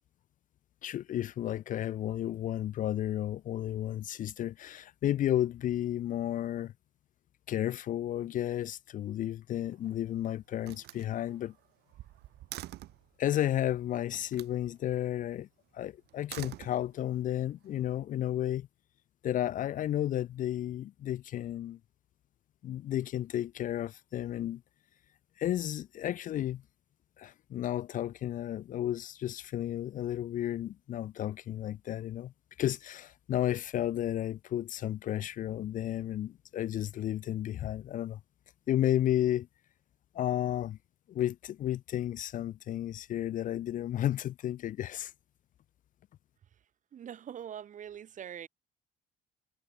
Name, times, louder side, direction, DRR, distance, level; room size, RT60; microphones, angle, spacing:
voice 1, 0.8-6.7 7.5-11.5 13.2-15.5 15.7-18.7 19.2-21.8 22.6-24.6 25.4-26.6 27.2-32.3 32.6-38.2 38.7-39.5 40.1-40.8 41.1-45.1, left 12 dB, 50° left, 0.5 m, -32 dB
Slam, 9.5-10.1 10.6-13.1 14.1-14.6 16.1-17.2, right 16 dB, 75° right, 3.5 m, -46 dB
voice 2, 46.9-48.5, right 9 dB, 50° right, 2.2 m, -43 dB
cardioid pair, 110°, 17 cm